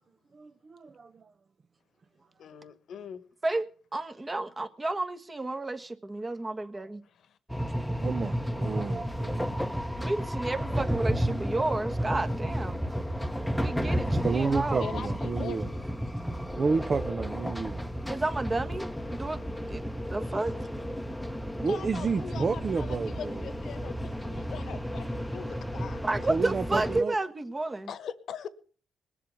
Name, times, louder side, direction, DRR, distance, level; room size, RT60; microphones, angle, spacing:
voice 1, 0.3-1.2 8.0-9.6 11.1-11.4 14.2-15.7 16.6-17.8 21.5-23.4 26.3-27.1, right 4 dB, 40° right, 0.8 m, -31 dB
voice 2, 2.4-3.3 7.2-7.4 14.8-15.8 16.4-16.6 17.5-18.5 19.1-19.6 20.2-21.3 21.6-26.1 27.9-28.5, left 8 dB, 65° left, 1.3 m, -43 dB
voice 3, 3.4-7.0 10.0-12.8 13.6-15.0 18.1-19.4 19.7-19.8 20.1-20.5 26.0-27.9, right 2 dB, 20° right, 1.4 m, -31 dB
sound 1, 7.5-27.0, equal, ahead, 1.0 m, -32 dB
20.5 x 7.4 x 7.1 m
cardioid pair, 90°, 0 cm